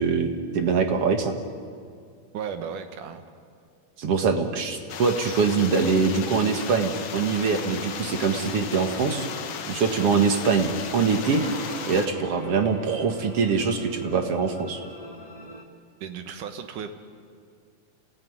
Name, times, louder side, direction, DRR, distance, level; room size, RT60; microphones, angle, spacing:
voice 1, 0.0-1.3 4.0-9.3 9.7-11.4 11.8-14.8, right 5 dB, 55° right, 6 dB, 2.3 m, -23 dB
voice 2, 2.3-3.3 16.0-16.9, right 7 dB, 75° right, 8 dB, 2.9 m, -35 dB
sound 1, 4.9-12.1, left 7 dB, 65° left, 2.4 m, -36 dB
sound 2, 7.0-15.6, right 1 dB, 15° right, 1.6 m, -42 dB
28.0 x 17.5 x 9.5 m, 2.2 s
omnidirectional pair, 3.7 m